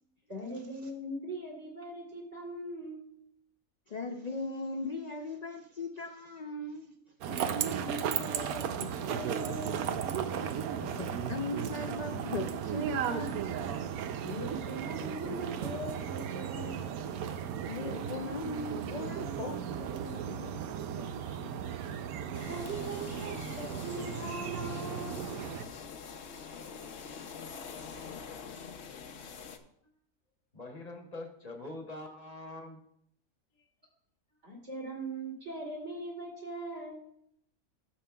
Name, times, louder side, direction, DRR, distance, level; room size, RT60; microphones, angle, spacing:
voice 1, 0.3-3.2 7.3-10.0 14.2-16.7 21.1-21.5 22.4-25.4 34.4-37.0, right 1 dB, 50° right, -2 dB, 3.0 m, -41 dB
voice 2, 3.9-6.9 7.3-7.4 10.8-13.5 17.7-20.6 20.9-21.1 21.4-21.5, left 3 dB, 80° left, 5 dB, 0.3 m, -39 dB
sound 1, 7.2-25.7, right 8 dB, 85° right, 1.1 m, -35 dB
sound 2, 22.3-29.6, left 6 dB, 55° left, 0.9 m, -45 dB
voice 3, 30.5-32.8, left 2 dB, 30° left, 2 dB, 1.1 m, -44 dB
13.0 x 7.1 x 2.3 m, 0.71 s
omnidirectional pair, 1.5 m